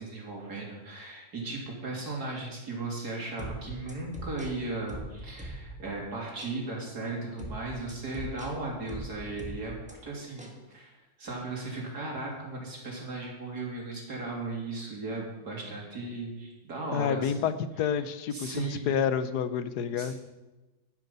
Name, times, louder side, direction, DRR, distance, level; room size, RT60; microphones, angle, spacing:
voice 1, 0.0-10.9 11.2-17.5 17.9-18.0 18.3-18.9 19.9-20.2, right 2 dB, 75° right, -2 dB, 3.7 m, -36 dB
sound 1, 3.4-5.9 6.4-6.6 7.4-9.9 10.4-10.6, right 1 dB, 5° right, 1.6 m, -41 dB
voice 2, 16.9-20.1, left 8 dB, 90° left, 12 dB, 1.3 m, -29 dB
11.5 x 11.0 x 5.4 m, 1.1 s
omnidirectional pair, 1.7 m